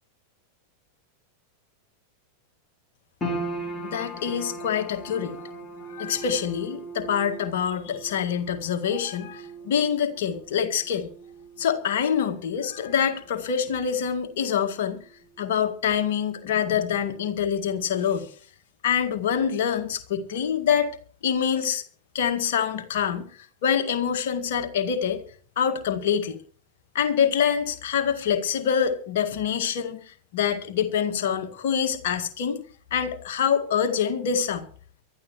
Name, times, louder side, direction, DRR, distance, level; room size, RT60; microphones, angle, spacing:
sound 1, 3.2-15.6 15.9-16.8 17.3-17.4, right 2 dB, 15° left, 6.7 m, -39 dB
voice 1, 3.8-5.4 5.9-11.1 11.6-15.0 15.4-18.3 18.8-20.9 21.2-21.8 22.1-23.3 23.6-25.2 25.6-26.4 26.9-32.6 32.9-34.7, left 8 dB, 55° left, 6 dB, 1.9 m, -25 dB
23.5 x 12.5 x 3.1 m, 0.43 s
figure-of-eight pair, 90°, 0 cm